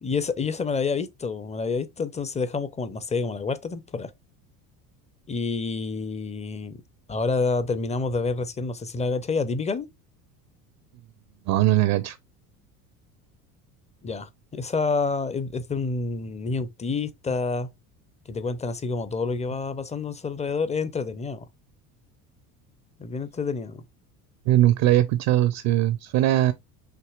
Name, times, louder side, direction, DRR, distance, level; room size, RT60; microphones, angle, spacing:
voice 1, 0.0-4.1 5.3-6.8 7.1-9.9 14.0-17.7 18.3-21.4 23.0-23.8, left 4 dB, 15° left, 0.6 m, -28 dB
voice 2, 11.5-12.2 24.5-26.5, right 14 dB, 50° right, 0.6 m, -20 dB
6.0 x 2.8 x 2.4 m
hypercardioid pair, 75°, 45 cm